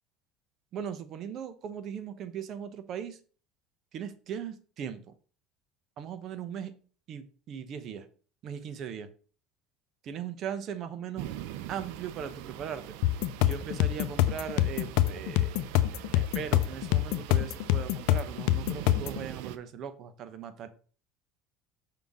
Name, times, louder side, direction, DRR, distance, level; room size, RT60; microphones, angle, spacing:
voice 1, 0.7-3.2 3.9-5.1 6.0-6.7 7.1-8.1 8.4-9.1 10.1-11.3 11.7-13.0 13.4-15.6 16.1-20.7, right 8 dB, 50° right, 11 dB, 0.8 m, -39 dB
sound 1, 11.2-19.6, right 12 dB, 80° right, 0.5 m, -43 dB
sound 2, 13.0-19.2, left 14 dB, 75° left, 0.5 m, -26 dB
5.8 x 3.6 x 5.2 m, 0.40 s
supercardioid pair, 105°, 0 cm